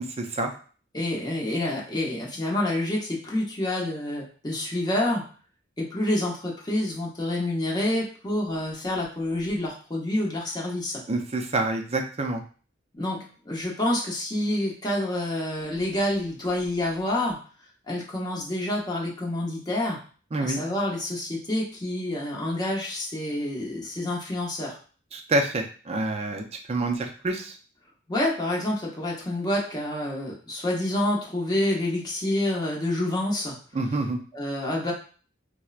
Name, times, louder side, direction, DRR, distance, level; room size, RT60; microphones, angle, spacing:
voice 1, 0.2-0.5 11.1-12.4 20.3-20.6 25.1-27.6 33.7-34.2, right 2 dB, 30° right, 4 dB, 0.4 m, -27 dB
voice 2, 0.9-5.2 5.8-11.0 12.9-17.4 17.9-20.0 20.4-24.8 28.1-33.6 34.3-34.9, left 1 dB, 20° left, -3 dB, 0.8 m, -28 dB
4.3 x 2.1 x 2.4 m, 0.40 s
head